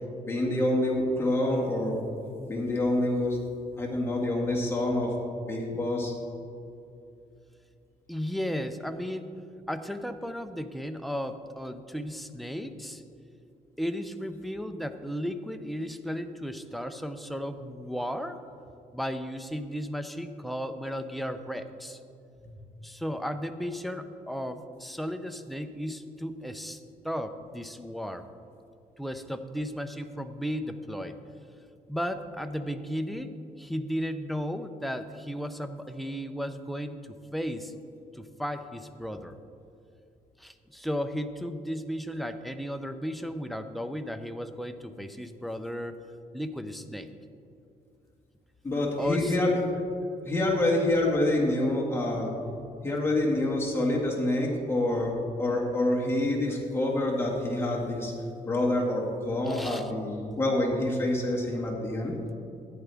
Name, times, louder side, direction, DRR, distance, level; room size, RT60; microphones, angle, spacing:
voice 1, 0.3-2.0 2.5-3.4 3.8-5.1 5.5-6.1 48.6-49.6 50.2-52.3 52.8-58.1 58.4-62.1, left 1 dB, 15° left, -3 dB, 2.0 m, -27 dB
voice 2, 8.1-9.4 9.7-13.0 13.8-18.4 18.9-22.0 22.8-26.8 27.0-28.2 29.0-31.2 31.9-33.3 33.6-37.7 38.1-39.4 40.4-45.9 46.3-47.1 49.0-49.4 59.5-59.9, equal, ahead, 8 dB, 0.5 m, -34 dB
13.5 x 10.0 x 3.5 m, 2.6 s
cardioid pair, 120°, 15 cm